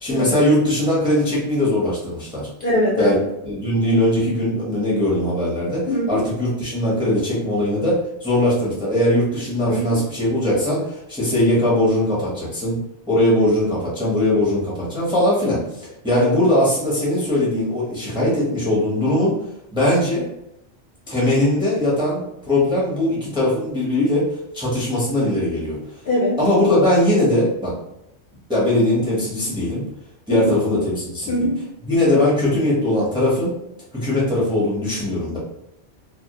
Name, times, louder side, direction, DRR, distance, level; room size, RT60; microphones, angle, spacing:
voice 1, 0.0-2.5 3.0-3.2 3.4-12.8 13.1-19.3 19.7-20.3 21.1-24.3 24.5-25.8 26.4-27.7 28.5-29.8 30.3-31.3 31.8-33.5 33.9-35.4, left 1 dB, 5° right, -6 dB, 0.6 m, -20 dB
voice 2, 2.6-3.2 5.9-6.2 9.7-10.0 16.2-16.4 26.0-26.4 30.3-30.6 31.3-31.6, left 1 dB, 60° left, -5 dB, 0.6 m, -22 dB
2.1 x 2.0 x 2.8 m, 0.83 s
omnidirectional pair, 1.2 m